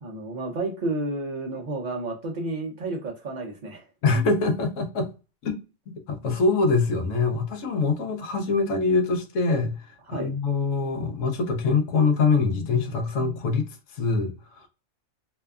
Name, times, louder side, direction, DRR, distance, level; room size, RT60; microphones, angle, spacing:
voice 1, 0.0-3.9 10.1-10.3, right 2 dB, 65° right, 0.4 m, -31 dB
voice 2, 4.0-5.1 5.4-5.5 6.1-9.7 10.1-13.7 14.0-14.7, left 4 dB, 70° left, 0.9 m, -24 dB
2.7 x 2.2 x 2.2 m
omnidirectional pair, 1.4 m